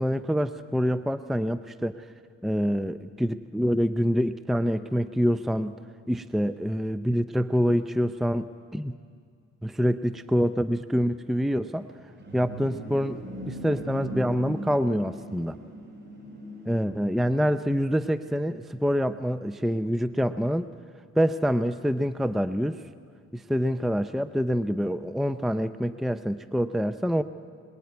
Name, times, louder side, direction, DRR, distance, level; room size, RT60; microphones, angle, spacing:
voice 1, 0.0-2.0 2.4-5.7 6.1-9.0 9.6-11.9 12.3-15.6 16.7-20.7 21.2-22.8 23.3-27.2, equal, ahead, 12 dB, 0.6 m, -26 dB
sound 1, 11.8-17.4, right 1 dB, 35° right, 6.0 m, -40 dB
24.5 x 21.0 x 9.5 m, 2.2 s
cardioid pair, 90°, 30 cm